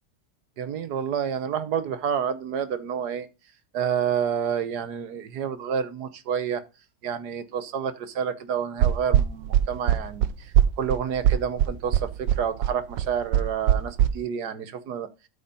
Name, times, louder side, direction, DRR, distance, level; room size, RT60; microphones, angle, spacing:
voice 1, 0.6-3.3 3.7-6.6 7.0-15.1, right 8 dB, 65° right, 1.4 m, -29 dB
sound 1, 8.8-14.1, right 11 dB, 85° right, 1.4 m, -21 dB
13.0 x 4.4 x 5.4 m
omnidirectional pair, 1.9 m